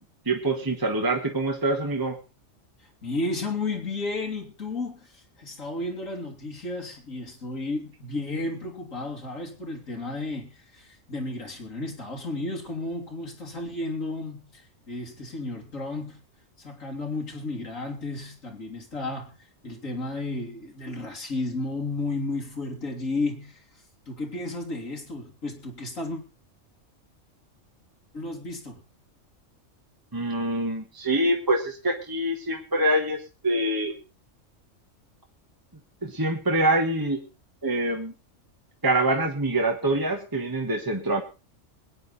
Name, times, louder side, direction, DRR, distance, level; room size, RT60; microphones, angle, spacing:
voice 1, 0.2-2.2 30.1-33.9 36.0-37.2 37.6-38.1 38.8-41.2, right 1 dB, 15° right, 1.4 m, -25 dB
voice 2, 3.0-16.2 16.6-19.3 19.6-23.6 24.1-26.2 28.1-28.8, left 2 dB, 85° left, 3.3 m, -33 dB
21.5 x 9.4 x 4.1 m
omnidirectional pair, 1.3 m